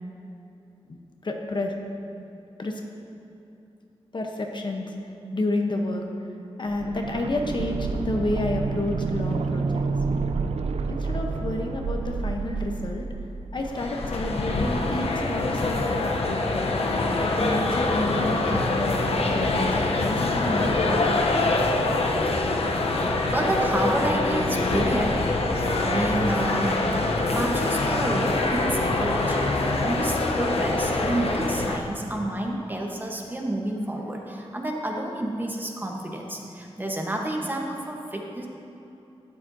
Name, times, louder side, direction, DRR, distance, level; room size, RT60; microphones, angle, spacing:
voice 1, 0.9-1.8 2.6-2.8 4.1-4.9 5.3-6.0 6.6-9.9 10.9-13.0 13.5-21.3, left 2 dB, 50° left, 2 dB, 0.8 m, -30 dB
sound 1, 6.7-14.5 14.8-14.9, right 4 dB, 90° right, 0.4 m, -29 dB
sound 2, 13.6-31.8, left 2 dB, 75° left, 0.7 m, -25 dB
voice 2, 23.3-25.3 25.8-26.9 27.2-38.5, right 1 dB, 20° right, 0 dB, 1.0 m, -29 dB
12.0 x 9.5 x 2.7 m, 2.8 s
wide cardioid pair, 100°, 10 cm